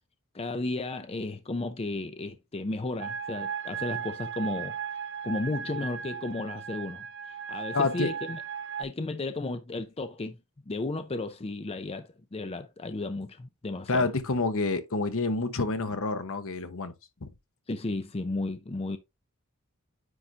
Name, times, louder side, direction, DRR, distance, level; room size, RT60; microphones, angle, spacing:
voice 1, 0.3-4.8 5.2-7.1 7.5-8.4 8.8-10.4 10.7-14.1 17.7-19.0, left 2 dB, 25° left, 0.6 m, -33 dB
sound 1, 3.0-8.8, right 7 dB, 55° right, 0.5 m, -36 dB
voice 2, 7.7-8.1 13.9-16.9 17.2-17.3, left 3 dB, 70° left, 1.0 m, -28 dB
9.8 x 3.9 x 2.9 m
head